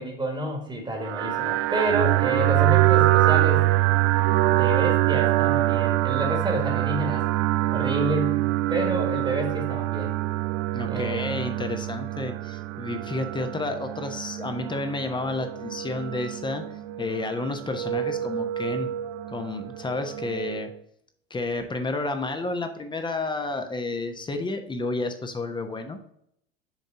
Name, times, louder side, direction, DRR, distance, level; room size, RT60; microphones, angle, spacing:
voice 1, 0.0-3.7 4.5-7.3 7.7-8.4 8.7-10.1 10.9-11.3, right 1 dB, 15° right, 2 dB, 1.7 m, -29 dB
sound 1, 1.0-20.7, right 16 dB, 60° right, 0.5 m, -25 dB
voice 2, 10.7-16.6 17.0-18.9 19.3-20.7 21.3-26.0, left 2 dB, 15° left, 6 dB, 1.1 m, -31 dB
7.3 x 4.1 x 3.9 m, 0.72 s
figure-of-eight pair, 75°, 30 cm